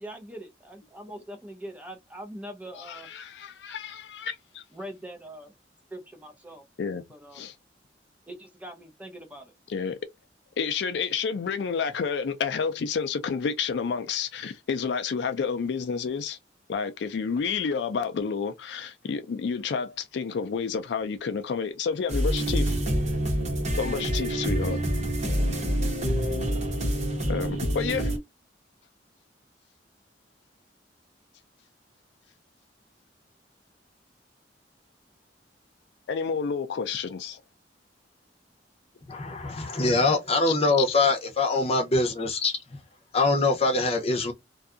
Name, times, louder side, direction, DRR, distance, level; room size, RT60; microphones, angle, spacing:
voice 1, 0.0-3.1 4.7-5.5 5.9-6.6 7.1-7.4 8.3-9.5, right 1 dB, 10° right, 0.6 m, -42 dB
voice 2, 2.7-4.6 6.8-7.0 7.3-7.5 9.7-10.0 10.6-16.4 16.7-22.8 23.8-24.8 27.3-28.1 36.1-37.4 40.5-40.6, left 5 dB, 65° left, 0.4 m, -30 dB
sound 1, 22.1-28.2, equal, 40° right, 0.9 m, -27 dB
voice 3, 39.1-42.8 43.1-44.3, left 3 dB, 35° left, 0.7 m, -24 dB
2.6 x 2.3 x 2.4 m
head